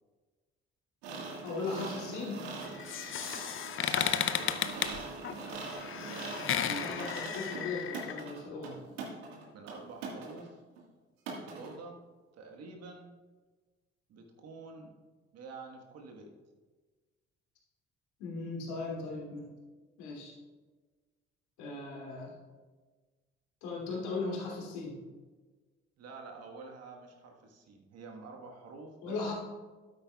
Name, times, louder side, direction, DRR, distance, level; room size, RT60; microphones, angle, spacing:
sound 1, 1.0-10.5 10.8-10.9 11.3-11.8, right 4 dB, 75° right, 1.7 m, -43 dB
voice 1, 1.4-2.4 6.7-8.8 18.2-19.5 20.0-20.3 21.6-22.3 23.6-25.0 29.0-29.3, left 3 dB, 65° left, -3 dB, 2.7 m, -37 dB
sound 2, 2.6-8.2, left 9 dB, 40° left, 0.7 m, -34 dB
voice 2, 3.9-5.4 9.5-10.6 11.4-12.1 12.3-13.1 14.1-14.9 15.3-16.3 26.0-29.2, right 3 dB, 55° right, 2 dB, 1.5 m, -48 dB
12.5 x 9.1 x 2.3 m, 1.3 s
figure-of-eight pair, 50°, 31 cm